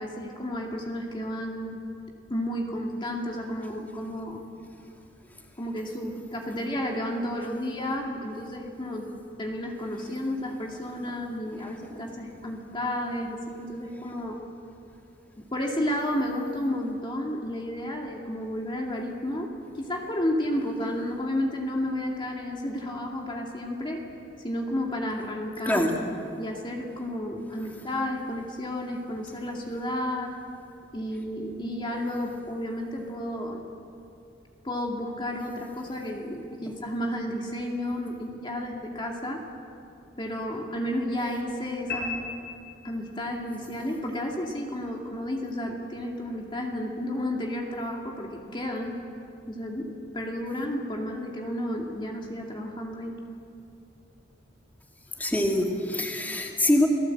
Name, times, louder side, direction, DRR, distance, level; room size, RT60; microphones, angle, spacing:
voice 1, 0.0-1.8 2.3-4.4 5.6-9.1 9.4-14.4 15.4-24.0 24.4-25.8 26.4-30.3 30.9-33.7 34.6-39.5 40.2-42.2 42.8-49.0 49.5-53.1, left 1 dB, 25° left, 0 dB, 2.4 m, -32 dB
voice 2, 25.6-26.0 55.2-56.9, left 1 dB, 10° left, 0 dB, 2.5 m, -24 dB
sound 1, 41.9-43.4, left 4 dB, 60° left, 4.8 m, -35 dB
29.5 x 18.5 x 7.9 m, 2.6 s
head